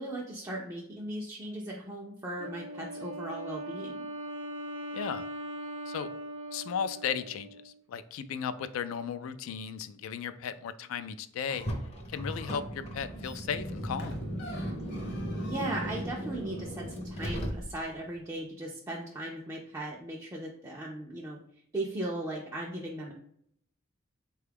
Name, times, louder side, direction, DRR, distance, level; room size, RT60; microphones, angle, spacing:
voice 1, 0.0-4.1 15.4-21.4 21.7-23.1, right 1 dB, 15° right, -3 dB, 0.4 m, -37 dB
Wind instrument woodwind instrument, 2.4-7.8, right 1 dB, 75° right, 0.5 m, -40 dB
voice 2, 4.9-5.2 5.9-6.1 6.5-11.6 12.1-14.2, left 7 dB, 75° left, 12 dB, 0.3 m, -35 dB
Car, 11.5-18.0, equal, 30° left, 0.6 m, -37 dB
sound 1, 12.6-12.8 13.0-16.2 16.7-16.8, equal, 55° left, 1.0 m, -47 dB
3.9 x 2.3 x 3.3 m, 0.68 s
head